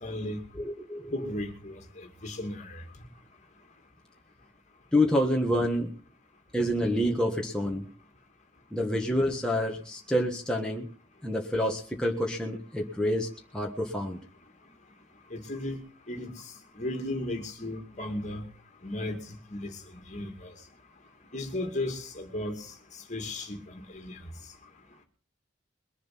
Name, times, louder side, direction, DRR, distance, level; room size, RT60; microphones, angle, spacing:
voice 1, 0.0-0.4 1.1-2.8 15.3-15.8 16.1-16.4 16.8-18.4 18.8-19.2 19.5-19.7 20.1-20.5 21.3-22.7 23.1-24.2, left 1 dB, 40° left, 5 dB, 2.4 m, -35 dB
voice 2, 0.5-1.3 4.9-5.9 6.5-7.9 8.7-10.9 11.2-14.2, left 1 dB, 5° left, -1 dB, 1.5 m, -28 dB
22.0 x 7.4 x 6.0 m, 0.41 s
head